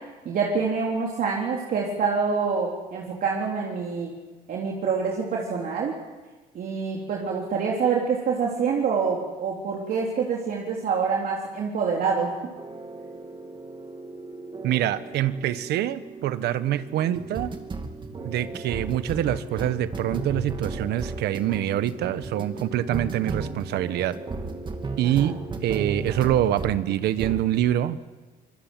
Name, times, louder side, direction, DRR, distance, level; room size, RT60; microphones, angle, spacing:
voice 1, 0.3-4.1 4.5-6.0 6.5-12.3 25.0-25.3, right 5 dB, 55° right, -2 dB, 3.7 m, -26 dB
sound 1, 12.6-26.8 27.2-27.5, right 3 dB, 30° right, 2.6 m, -35 dB
voice 2, 14.6-17.5 18.2-24.1 25.0-25.4 25.6-28.0, right 12 dB, 75° right, 13 dB, 1.3 m, -25 dB
25.5 x 21.0 x 9.3 m, 1.2 s
cardioid pair, 110°, 17 cm